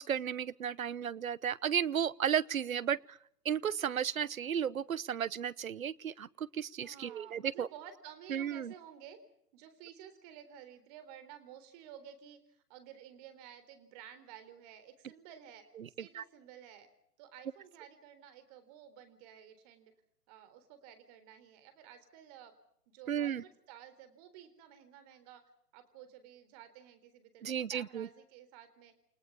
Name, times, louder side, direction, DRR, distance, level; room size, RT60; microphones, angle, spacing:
voice 1, 0.0-3.2 3.4-7.7 8.3-8.7 16.1-16.2 23.1-23.4 27.4-28.1, right 8 dB, 60° right, 22 dB, 1.1 m, -34 dB
voice 2, 6.8-9.2 9.5-15.6 16.0-16.9 17.2-19.9 20.3-22.5 22.9-25.4 25.7-28.9, right 9 dB, 25° right, 11 dB, 3.9 m, -53 dB
29.5 x 18.5 x 7.2 m, 0.70 s
figure-of-eight pair, 140°, 47 cm